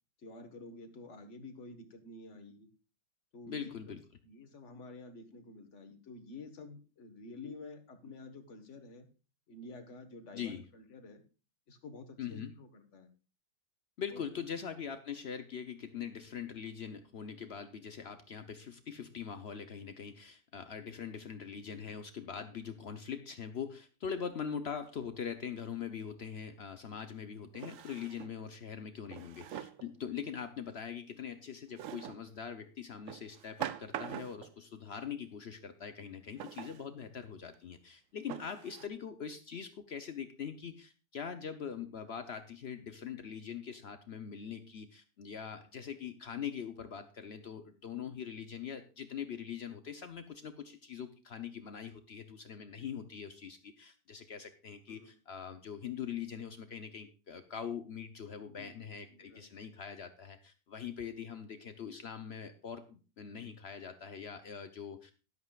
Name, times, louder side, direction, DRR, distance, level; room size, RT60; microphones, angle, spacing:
voice 1, 0.2-2.7 3.3-4.0 4.2-9.1 9.5-11.2 11.7-13.1 14.1-14.5 29.0-29.3 54.9-55.1 58.5-58.8 59.1-59.5, left 3 dB, 40° left, 7 dB, 1.6 m, -50 dB
voice 2, 3.5-4.0 10.3-10.6 12.2-12.5 14.0-65.1, left 7 dB, 85° left, 9 dB, 0.5 m, -42 dB
Drawer open or close, 26.2-26.3 27.5-28.4 29.1-29.9 31.8-32.3 33.1-34.5 36.4-36.9 37.5-37.6 38.3-38.9, right 11 dB, 80° right, 0.7 m, -43 dB
13.0 x 12.0 x 2.4 m, 0.35 s
omnidirectional pair, 2.1 m